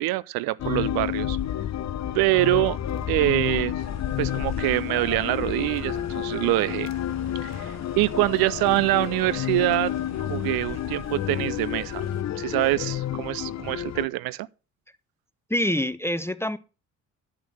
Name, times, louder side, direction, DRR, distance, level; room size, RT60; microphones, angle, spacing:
voice 1, 0.0-1.4 2.1-2.8 3.1-3.7 4.2-6.9 7.4-9.9 10.2-12.1 12.4-14.5, right 18 dB, 60° right, 0.6 m, -25 dB
sound 1, 0.6-14.1, left 11 dB, 40° left, 0.8 m, -30 dB
sound 2, 3.8-12.2, right 3 dB, 40° right, 3.1 m, -48 dB
voice 2, 15.5-16.6, left 1 dB, 5° left, 0.6 m, -25 dB
10.0 x 5.9 x 6.4 m
figure-of-eight pair, 45°, 42 cm